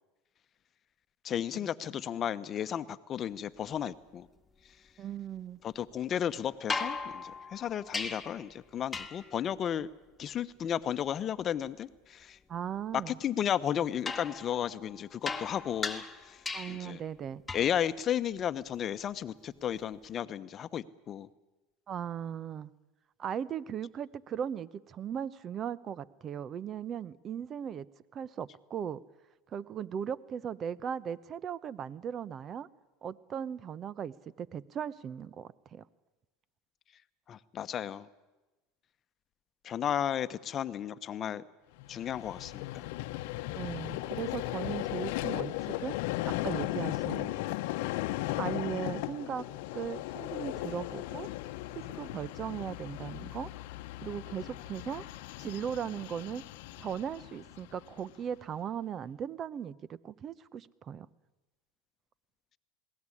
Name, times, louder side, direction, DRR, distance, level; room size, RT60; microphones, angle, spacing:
voice 1, 1.2-4.3 4.6-4.8 5.6-9.9 10.2-12.4 12.9-17.0 17.5-21.3 37.3-38.1 39.6-41.4 41.9-42.9, left 9 dB, 40° left, 14 dB, 1.0 m, -34 dB
voice 2, 5.0-5.6 12.5-13.2 16.5-17.4 21.9-22.7 23.2-27.9 28.1-29.0 29.5-32.7 33.0-35.8 43.6-46.0 46.4-47.3 48.4-49.5 49.7-51.3 51.9-53.5 54.0-55.1 55.4-56.4 56.8-59.8 60.0-61.1, right 8 dB, 40° right, 21 dB, 0.8 m, -38 dB
sound 1, 6.7-8.5 8.9-9.4 14.1-16.9 17.5-17.8 19.8-19.9, left 4 dB, 15° left, 1.8 m, -38 dB
Vehicle, 41.8-58.1, left 16 dB, 70° left, 0.9 m, -37 dB
21.0 x 17.0 x 10.0 m, 1.1 s
hypercardioid pair, 100°, 0 cm